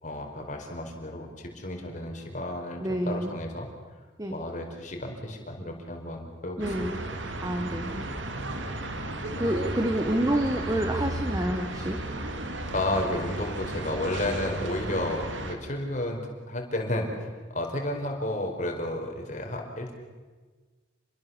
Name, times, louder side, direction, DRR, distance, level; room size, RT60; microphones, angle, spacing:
voice 1, 0.0-3.7 4.3-6.9 9.3-9.6 12.7-16.2 16.5-19.9, left 1 dB, 40° left, 2 dB, 4.6 m, -32 dB
voice 2, 2.8-3.3 4.2-4.4 6.6-7.0 7.4-8.0 9.4-12.0, right 1 dB, 20° right, 5 dB, 1.5 m, -28 dB
sound 1, 6.6-15.5, right 1 dB, 85° right, 2.7 m, -34 dB
29.0 x 22.0 x 7.2 m, 1.4 s
head